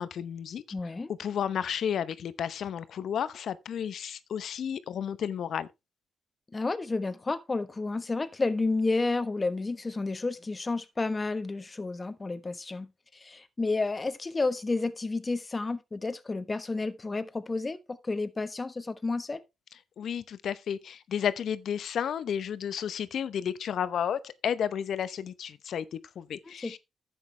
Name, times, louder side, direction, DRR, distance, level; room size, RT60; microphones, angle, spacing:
voice 1, 0.0-0.6 1.1-5.7 20.0-26.8, left 8 dB, 70° left, 0.8 m, -32 dB
voice 2, 0.7-1.1 6.5-12.9 13.1-19.4 26.6-26.8, left 3 dB, 30° left, 1.2 m, -31 dB
11.0 x 8.1 x 3.3 m
cardioid pair, 65°, 0 cm